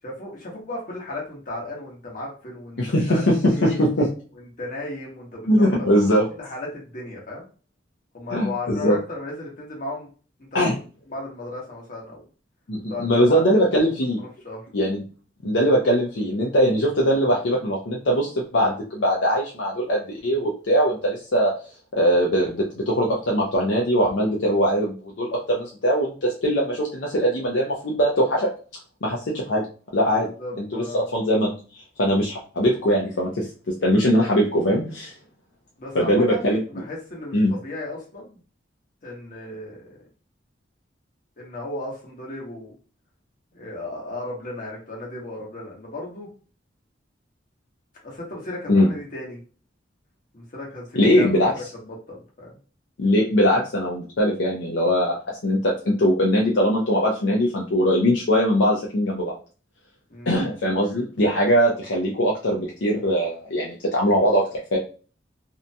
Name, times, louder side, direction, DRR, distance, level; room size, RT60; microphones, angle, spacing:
voice 1, 0.0-3.8 4.3-5.6 6.3-7.5 8.1-10.1 10.5-10.7 11.1-12.2 12.9-13.4 14.4-14.7 30.0-31.1 35.8-38.4 39.0-39.8 41.4-42.7 43.5-46.3 48.0-49.4 50.3-52.6 60.1-60.5, left 2 dB, 45° left, -2 dB, 1.1 m, -35 dB
voice 2, 2.8-4.1 5.5-6.2 8.3-9.0 10.5-10.7 12.7-14.2 14.7-15.0 15.4-21.5 21.9-28.5 29.0-29.7 29.9-30.3 30.6-31.5 32.0-33.5 33.8-35.1 35.9-36.6 37.3-37.5 48.7-48.9 51.0-51.5 53.0-55.2 55.4-59.4 60.3-64.8, equal, 70° left, -2 dB, 0.6 m, -21 dB
2.7 x 2.2 x 2.7 m, 0.37 s
head